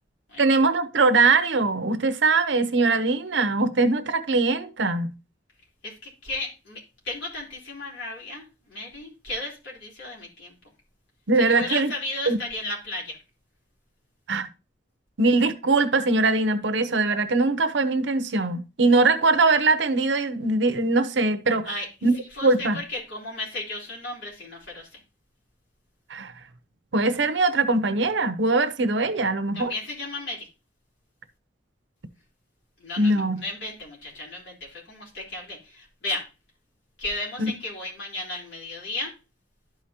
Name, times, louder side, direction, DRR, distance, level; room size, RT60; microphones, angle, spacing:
voice 1, 0.4-5.1 11.3-11.9 12.3-12.4 14.3-14.5 15.2-21.7 22.0-22.2 22.4-22.8 26.1-26.3 26.9-29.7 33.0-33.4 37.4-37.5, right 3 dB, 90° right, 0.8 m, -21 dB
voice 2, 5.8-10.5 11.4-13.2 21.7-21.9 22.3-25.0 29.5-30.5 32.8-36.3 37.0-39.1, left 2 dB, 85° left, 3.9 m, -34 dB
12.0 x 5.1 x 2.8 m
head